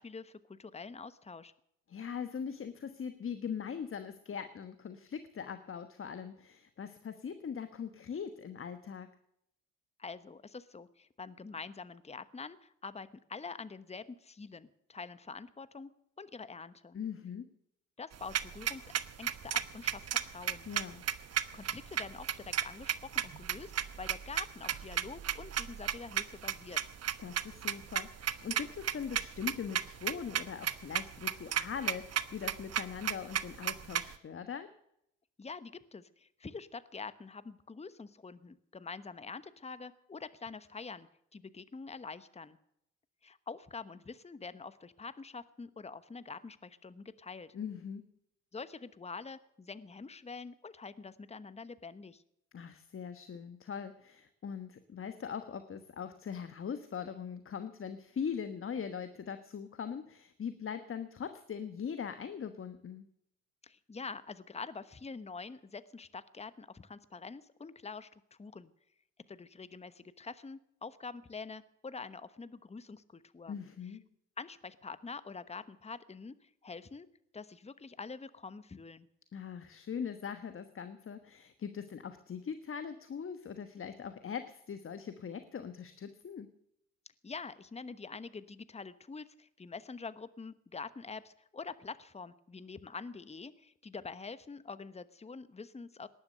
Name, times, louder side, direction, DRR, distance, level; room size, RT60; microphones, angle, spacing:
voice 1, 0.0-1.5 10.0-15.9 16.2-17.0 18.0-18.9 19.2-20.7 21.5-23.7 24.0-26.8 35.4-42.6 43.2-47.6 48.5-52.2 63.6-68.7 69.3-73.6 74.4-77.1 77.3-79.1 87.2-96.1, left 4 dB, 20° left, 14 dB, 1.1 m, -46 dB
voice 2, 1.9-9.1 16.9-17.5 20.7-21.0 27.2-34.7 47.5-48.0 52.5-63.0 73.5-74.0 79.3-86.5, left 7 dB, 40° left, 9 dB, 1.3 m, -41 dB
sound 1, 18.1-34.1, right 10 dB, 45° right, 1.1 m, -34 dB
18.5 x 11.5 x 6.7 m, 0.76 s
hypercardioid pair, 50°, 34 cm